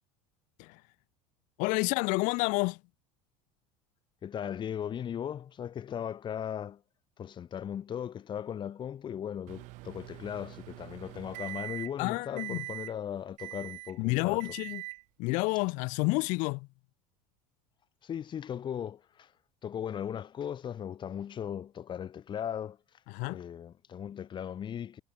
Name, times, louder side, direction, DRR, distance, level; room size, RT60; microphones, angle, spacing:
voice 1, 1.6-2.8 12.0-12.6 14.0-14.8 15.2-16.7 23.1-23.4, left 27 dB, 65° left, 1.9 m, -29 dB
voice 2, 4.2-6.8 7.2-14.4 18.0-19.3 19.6-22.8 23.3-25.0, left 9 dB, 35° left, 7.1 m, -37 dB
Microwave oven, 9.5-12.0 12.4-12.9 13.4-14.0 14.4-15.0, right 22 dB, 60° right, 2.1 m, -42 dB
supercardioid pair, 125°, 14 cm